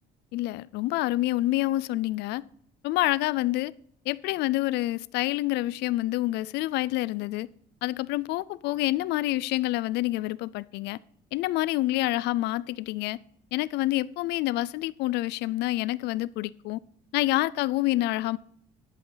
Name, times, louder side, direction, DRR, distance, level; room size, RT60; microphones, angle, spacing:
voice 1, 0.3-2.4 2.8-3.7 4.1-7.5 7.8-11.0 11.3-13.2 13.5-16.8 17.1-18.4, left 17 dB, 85° left, 0.4 m, -27 dB
11.0 x 7.8 x 3.9 m
cardioid pair, 110°, 17 cm